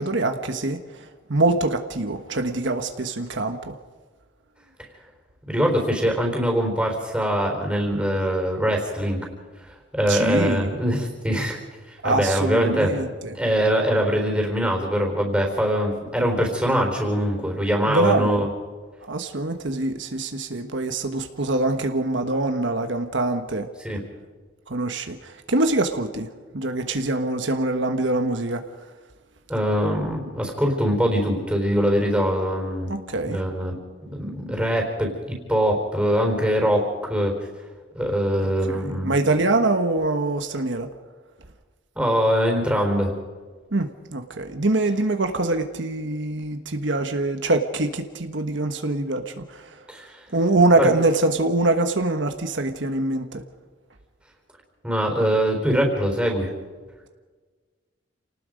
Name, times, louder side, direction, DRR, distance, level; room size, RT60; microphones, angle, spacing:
voice 1, 0.0-3.8 10.1-10.8 12.0-13.4 17.9-18.5 19.1-23.7 24.7-28.6 32.9-33.4 38.7-40.9 43.7-49.8 50.3-53.4, right 2 dB, 70° right, 7 dB, 1.2 m, -24 dB
voice 2, 5.5-9.3 9.9-11.6 12.0-12.9 13.3-18.5 23.8-24.0 29.5-32.9 33.3-33.7 34.1-37.3 38.0-39.2 42.0-43.1 49.9-50.2 50.8-50.9 54.8-56.5, equal, 5° right, 1 dB, 4.1 m, -23 dB
28.5 x 19.0 x 5.2 m, 1.4 s
head